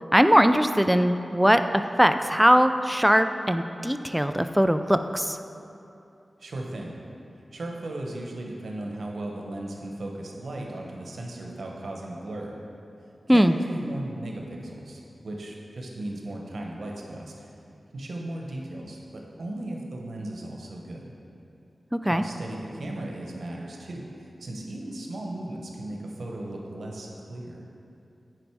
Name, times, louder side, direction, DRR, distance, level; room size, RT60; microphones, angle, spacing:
voice 1, 0.1-1.6 2.0-5.4 13.3-13.6 22.0-22.2, equal, 5° right, 9 dB, 0.3 m, -20 dB
voice 2, 6.4-7.0 7.5-12.6 13.3-17.5 17.9-21.1 22.1-27.6, right 1 dB, 80° right, 0 dB, 1.1 m, -36 dB
9.0 x 5.2 x 4.7 m, 2.8 s
wide cardioid pair, 75°, 0 cm